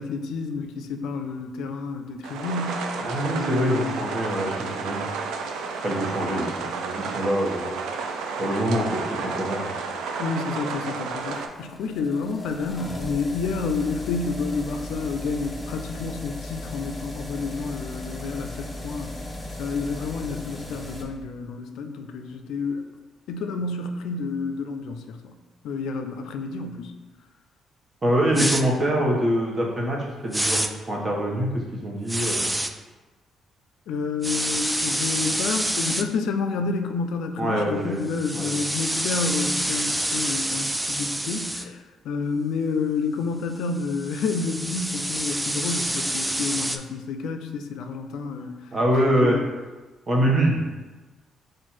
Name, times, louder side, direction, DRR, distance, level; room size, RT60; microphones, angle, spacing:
voice 1, 0.0-2.8 3.2-4.0 9.4-9.6 10.2-19.1 19.5-22.9 23.3-25.4 25.6-26.9 33.9-48.5 49.1-49.4, left 4 dB, 85° left, 6 dB, 0.4 m, -29 dB
sound 1, 2.2-11.5, right 4 dB, 85° right, 0.4 m, -31 dB
voice 2, 3.0-5.0 5.8-7.8 8.3-9.9 28.0-32.5 37.4-38.0 38.3-38.5 48.7-49.4 50.1-50.6, equal, 30° right, -2 dB, 1.1 m, -24 dB
sound 2, 10.8-21.0, left 1 dB, 15° left, 0.7 m, -37 dB
sound 3, 28.3-28.6 30.3-30.7 32.1-32.7 34.2-36.0 38.1-41.6 43.8-46.8, right 1 dB, 10° right, 0.3 m, -27 dB
4.3 x 2.5 x 4.3 m, 1.2 s
cardioid pair, 90°, 0 cm